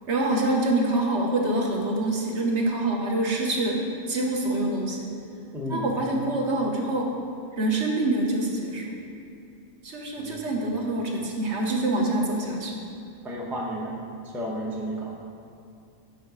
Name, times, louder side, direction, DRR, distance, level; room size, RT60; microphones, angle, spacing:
voice 1, 0.1-5.1 5.7-7.1 7.6-9.0 9.8-12.8, right 2 dB, 60° right, -1 dB, 1.0 m, -26 dB
voice 2, 5.5-5.9 10.2-10.4 13.2-14.0 14.3-15.2, equal, ahead, -3 dB, 0.5 m, -32 dB
5.5 x 4.8 x 6.0 m, 2.5 s
omnidirectional pair, 1.5 m